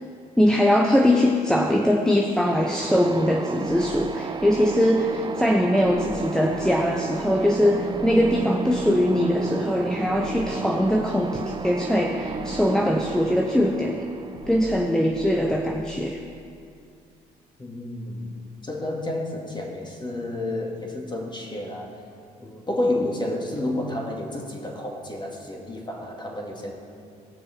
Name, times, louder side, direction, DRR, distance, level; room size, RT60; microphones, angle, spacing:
voice 1, 0.4-14.1 14.5-16.2, equal, 5° left, 1 dB, 0.9 m, -21 dB
sound 1, 2.4-16.1, right 4 dB, 25° right, 0.6 m, -33 dB
sound 2, 3.6-4.9 5.8-7.4 7.9-9.3 10.0-11.7 12.2-13.6 14.3-15.9, left 1 dB, 85° left, 1.3 m, -45 dB
voice 2, 17.6-18.4 18.6-22.0 22.4-26.7, left 1 dB, 25° left, 0 dB, 2.3 m, -30 dB
18.0 x 6.4 x 4.4 m, 2.4 s
hypercardioid pair, 55°, 20 cm